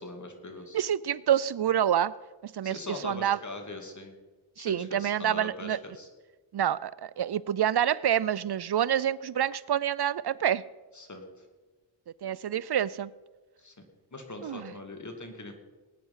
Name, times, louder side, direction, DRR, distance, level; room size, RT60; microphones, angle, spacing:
voice 1, 0.0-0.8 2.6-4.2 4.6-6.1 10.9-11.5 13.6-13.7 14.1-15.5, left 2 dB, 35° left, 4 dB, 2.6 m, -41 dB
voice 2, 0.7-2.1 2.4-3.4 4.6-5.8 6.5-10.6 12.2-13.1 14.4-14.7, right 10 dB, 55° right, 19 dB, 0.5 m, -27 dB
20.0 x 9.3 x 5.6 m, 1.3 s
wide cardioid pair, 70°, 48 cm